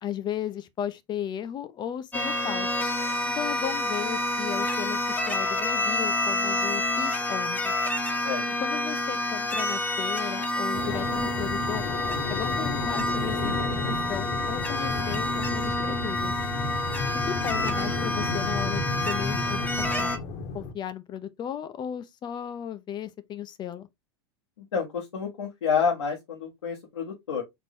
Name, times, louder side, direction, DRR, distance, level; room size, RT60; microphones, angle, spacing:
voice 1, 0.0-2.8 3.2-7.7 8.6-11.8 12.3-16.3 17.1-20.1 20.5-23.9, left 10 dB, 30° left, 0.7 m, -35 dB
sound 1, 2.1-20.2, left 1 dB, 10° left, 1.0 m, -28 dB
sound 2, 10.7-20.7, left 3 dB, 50° left, 1.1 m, -32 dB
voice 2, 16.6-17.1 24.6-27.4, left 6 dB, 90° left, 1.4 m, -29 dB
4.4 x 3.0 x 3.5 m
hypercardioid pair, 110°, 14 cm